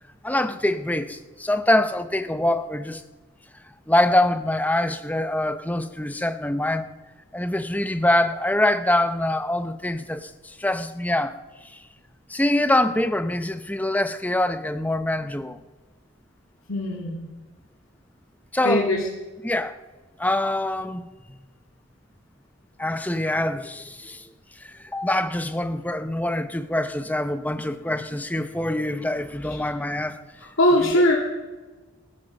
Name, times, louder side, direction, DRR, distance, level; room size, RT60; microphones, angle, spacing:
voice 1, 0.2-3.0 3.9-6.9 7.3-11.8 12.3-15.6 18.5-18.9 19.4-19.7 20.2-21.1 22.8-24.3 24.6-30.2 30.8-30.9, left 1 dB, 10° left, 0.8 m, -24 dB
voice 2, 16.7-17.3 18.6-19.0 30.6-31.1, left 1 dB, 85° left, 2.8 m, -20 dB
17.5 x 14.5 x 5.4 m
head